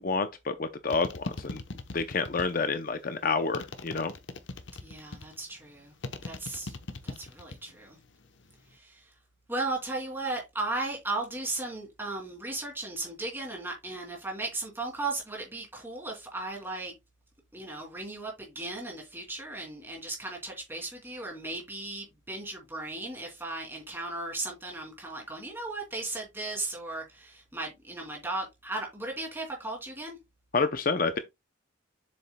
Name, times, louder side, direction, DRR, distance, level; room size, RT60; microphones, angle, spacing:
voice 1, 0.0-1.6 1.9-4.1 30.5-31.2, left 4 dB, 45° left, 0.6 m, -29 dB
sound 1, 0.9-2.8 3.5-5.4 6.0-7.7 8.0-8.6, left 2 dB, 65° left, 0.9 m, -39 dB
voice 2, 4.8-5.9 6.2-6.7 7.0-8.0 8.7-9.1 9.5-16.9 17.5-30.2, right 2 dB, 10° right, 2.8 m, -36 dB
7.6 x 6.9 x 2.2 m
head